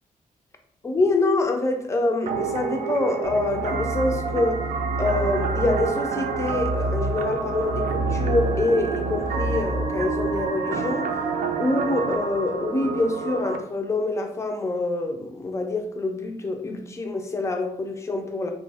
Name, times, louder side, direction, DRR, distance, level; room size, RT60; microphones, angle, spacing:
voice 1, 0.8-4.7 5.0-11.1 11.6-18.5, left 2 dB, 20° left, 0.4 m, -26 dB
sound 1, 2.3-13.6, right 5 dB, 65° right, 0.4 m, -29 dB
sound 2, 3.2-10.5, right 1 dB, 20° right, 0.6 m, -30 dB
3.0 x 2.0 x 3.3 m
wide cardioid pair, 170°, 14 cm